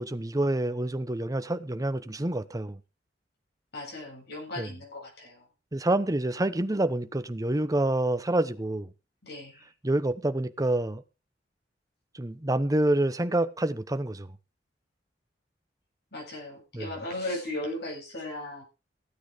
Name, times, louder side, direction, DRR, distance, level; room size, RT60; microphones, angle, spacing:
voice 1, 0.0-2.8 4.6-4.7 5.7-8.9 9.8-11.0 12.1-14.3 16.7-16.9, right 1 dB, 20° right, 0.9 m, -27 dB
voice 2, 3.7-5.5 9.2-9.7 16.1-18.6, left 1 dB, 65° left, 7.9 m, -37 dB
16.0 x 9.2 x 5.1 m
head